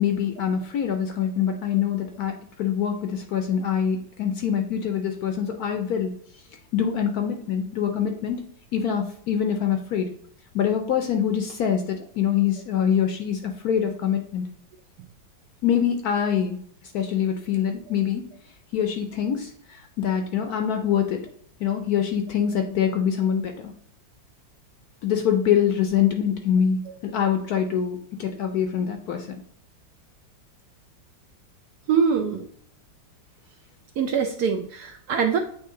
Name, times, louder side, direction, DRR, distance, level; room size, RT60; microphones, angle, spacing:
voice 1, 0.0-6.2 6.7-8.4 8.7-10.1 10.5-14.5 15.6-16.6 16.9-18.3 18.7-21.3 21.6-23.7 25.0-29.4, left 8 dB, 65° left, 5 dB, 1.0 m, -24 dB
voice 2, 31.9-32.5 34.0-35.4, right 6 dB, 70° right, 5 dB, 1.0 m, -23 dB
8.5 x 3.0 x 3.7 m, 0.62 s
omnidirectional pair, 2.1 m